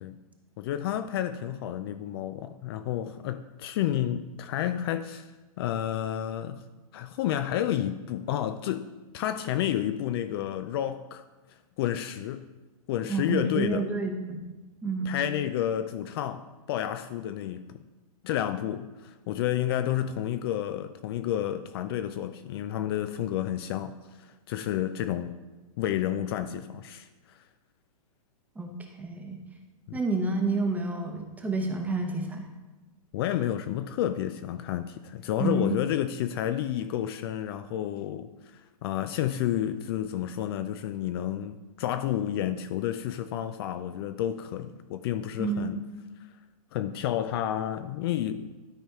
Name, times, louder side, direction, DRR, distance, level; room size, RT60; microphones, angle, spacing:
voice 1, 0.6-5.3 5.6-6.7 6.9-11.2 11.8-12.5 12.9-13.9 15.1-17.8 18.2-25.4 25.8-27.4 29.9-30.0 33.1-45.8 46.7-48.5, left 11 dB, 40° left, 10 dB, 0.4 m, -30 dB
voice 2, 13.1-14.4 14.8-15.2 28.6-29.4 29.9-32.5 35.4-35.7 45.4-45.8, right 3 dB, 10° right, 3 dB, 0.8 m, -29 dB
12.0 x 4.2 x 3.5 m, 1.1 s
hypercardioid pair, 135°, 19 cm